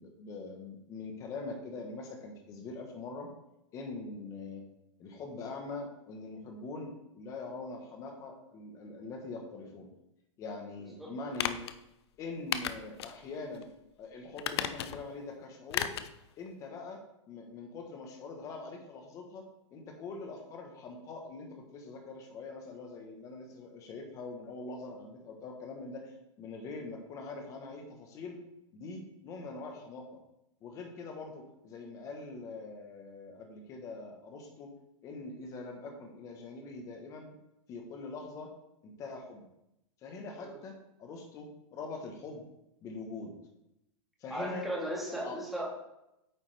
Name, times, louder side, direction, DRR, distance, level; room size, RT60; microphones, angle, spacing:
voice 1, 0.0-3.3 3.7-4.6 5.0-9.9 10.4-11.6 12.2-13.7 14.0-15.9 16.4-17.0 17.3-19.4 19.7-28.4 28.7-30.1 30.6-34.7 35.0-37.4 37.7-38.5 38.8-39.4 40.0-42.4 42.8-43.3 44.2-44.7 45.1-45.4, left 3 dB, 20° left, 3 dB, 1.2 m, -43 dB
sound 1, 11.3-11.8 12.5-13.2 13.5-13.6 14.4-15.1 15.7-16.1 16.5-16.6, left 10 dB, 55° left, 0.6 m, -34 dB
voice 2, 44.3-45.6, right 1 dB, ahead, -5 dB, 1.7 m, -36 dB
9.0 x 7.0 x 3.4 m, 0.86 s
supercardioid pair, 170°, 17 cm